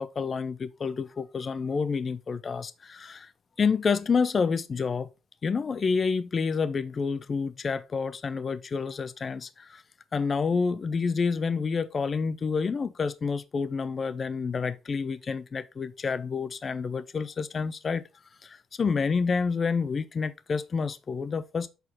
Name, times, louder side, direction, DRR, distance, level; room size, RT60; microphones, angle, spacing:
voice 1, 0.0-3.3 3.6-5.1 5.4-9.8 10.1-18.0 18.4-21.7, left 5 dB, 40° left, 0.5 m, -28 dB
6.8 x 4.1 x 4.1 m
cardioid pair, 90°, 0 cm